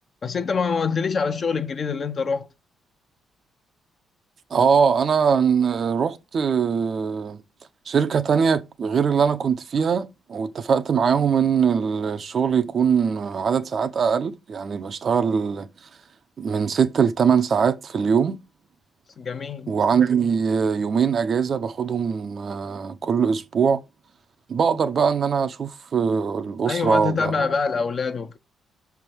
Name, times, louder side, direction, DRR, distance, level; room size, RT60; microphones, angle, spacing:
voice 1, 0.2-2.5 19.2-19.7 26.6-28.4, left 5 dB, 35° left, 0.9 m, -25 dB
voice 2, 4.5-7.4 7.9-15.7 16.4-18.4 19.7-23.8 24.5-27.5, right 6 dB, 40° right, 0.7 m, -22 dB
6.6 x 3.5 x 6.2 m
cardioid pair, 150°, 0 cm